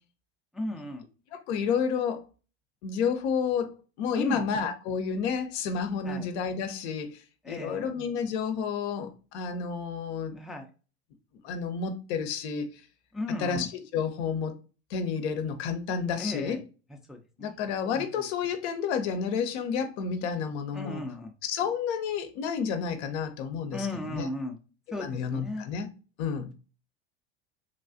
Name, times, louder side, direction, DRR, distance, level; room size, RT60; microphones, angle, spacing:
voice 1, 0.5-1.0 4.1-4.4 6.0-6.3 7.4-7.9 10.3-10.7 13.1-13.7 16.2-16.6 17.1-17.7 17.9-18.1 20.7-21.3 23.7-24.6 24.9-25.7, left 1 dB, ahead, 0.4 m, -35 dB
voice 2, 1.5-2.2 2.8-10.4 11.4-12.8 13.4-14.6 14.9-16.6 17.4-21.0 21.4-24.3 25.0-25.9 26.2-26.5, left 6 dB, 70° left, 0.7 m, -30 dB
3.2 x 2.3 x 2.5 m
hypercardioid pair, 85°, 35 cm